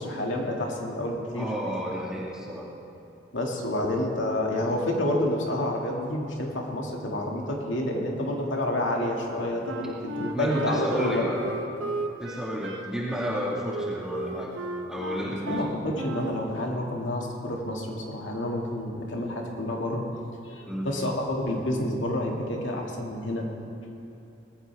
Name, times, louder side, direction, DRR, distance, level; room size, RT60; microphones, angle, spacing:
voice 1, 0.0-1.5 3.3-11.5 15.2-20.1 20.4-23.5, left 1 dB, 85° left, -1 dB, 2.2 m, -29 dB
voice 2, 1.4-2.7 10.3-11.4 12.2-14.6 14.9-15.7 20.7-20.9, equal, 5° right, -6 dB, 1.9 m, -31 dB
Wind instrument woodwind instrument, 9.7-16.5, right 2 dB, 90° right, 1.0 m, -35 dB
19.5 x 15.0 x 3.5 m, 2.8 s
head